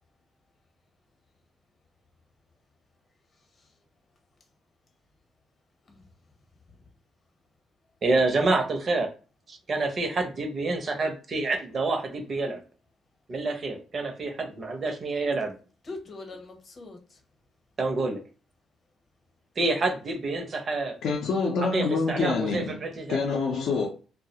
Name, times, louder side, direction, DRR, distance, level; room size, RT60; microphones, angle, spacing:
voice 1, 3.3-3.7 5.8-6.1 6.7-6.9 15.8-17.2, left 3 dB, 40° left, 0.8 m, -44 dB
voice 2, 8.0-9.1 9.5-12.6 13.3-15.5 17.8-18.2 19.6-21.0 21.7-23.2, right 3 dB, 45° right, 0.5 m, -27 dB
voice 3, 21.0-22.7 23.1-23.9, left 4 dB, 75° left, 0.4 m, -26 dB
2.3 x 2.0 x 2.7 m
cardioid pair, 90°, 0 cm